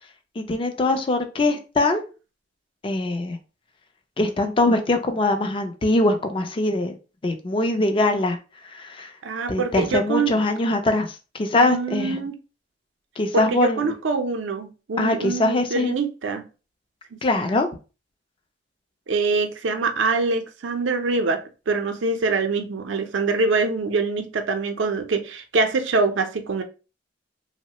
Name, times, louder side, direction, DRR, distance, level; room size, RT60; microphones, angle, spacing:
voice 1, 0.4-2.0 2.8-3.4 4.2-6.9 7.2-8.4 8.6-9.1 9.5-12.2 13.2-13.9 15.0-15.9 17.2-17.7, left 2 dB, 30° left, 0.4 m, -22 dB
voice 2, 9.2-10.3 11.6-12.4 13.3-16.4 17.1-17.5 19.1-21.4 21.7-26.6, right 4 dB, 90° right, 0.5 m, -24 dB
3.0 x 2.0 x 2.8 m
head